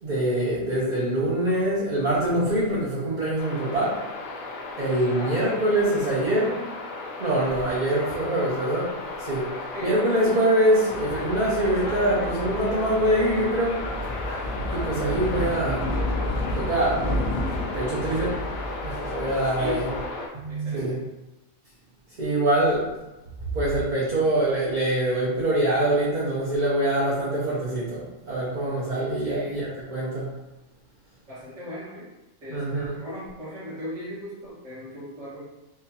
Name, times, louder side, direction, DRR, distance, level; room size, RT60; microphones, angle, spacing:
voice 1, 0.0-4.0 4.8-6.6 7.2-8.9 9.2-9.5 9.8-13.8 14.7-15.9 16.5-17.0 17.7-18.4 18.8-19.9 20.4-21.0 22.2-22.9 23.5-30.3 32.5-33.0, right 1 dB, 40° right, -8 dB, 0.8 m, -24 dB
sound 1, 3.4-20.3, left 3 dB, 85° left, 1.0 m, -35 dB
voice 2, 5.1-5.4 9.7-10.0 19.4-20.1 20.5-21.0 29.0-29.7 31.3-32.1 32.4-35.5, equal, 65° right, -10 dB, 1.9 m, -37 dB
sound 2, 10.9-20.0, left 1 dB, 70° left, 0.4 m, -31 dB
3.8 x 2.5 x 2.8 m, 1.0 s
omnidirectional pair, 1.4 m